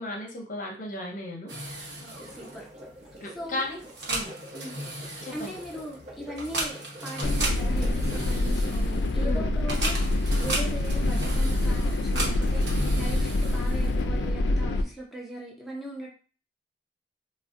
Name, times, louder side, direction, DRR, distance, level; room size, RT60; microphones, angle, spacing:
voice 1, 0.0-1.5 3.2-3.8 4.1-4.3 5.2-5.5 9.2-9.4, left 1 dB, 45° left, 1 dB, 0.7 m, -35 dB
sound 1, 1.5-14.2, right 1 dB, 70° right, 0.9 m, -36 dB
sound 2, 1.9-8.7, right 1 dB, 40° right, 0.8 m, -47 dB
voice 2, 2.0-2.7 3.3-3.7 4.5-4.8 5.3-16.1, equal, ahead, -3 dB, 0.5 m, -39 dB
sound 3, 7.2-14.8, left 1 dB, 85° left, 0.4 m, -25 dB
3.8 x 2.1 x 2.5 m, 0.38 s
head